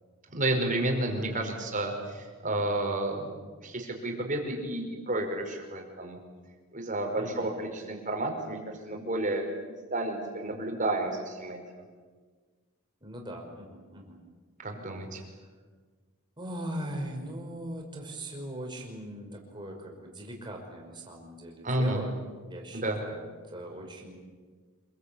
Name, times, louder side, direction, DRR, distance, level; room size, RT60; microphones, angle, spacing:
voice 1, 0.3-3.3 3.6-6.2 6.7-8.6 8.9-11.8 14.6-15.2 21.6-22.0 22.7-23.0, right 2 dB, 35° right, 3 dB, 5.0 m, -31 dB
voice 2, 7.2-7.5 13.0-14.2 15.1-15.3 16.4-22.1 22.4-24.2, right 1 dB, 20° right, 1 dB, 5.3 m, -40 dB
27.5 x 22.5 x 8.7 m, 1.5 s
head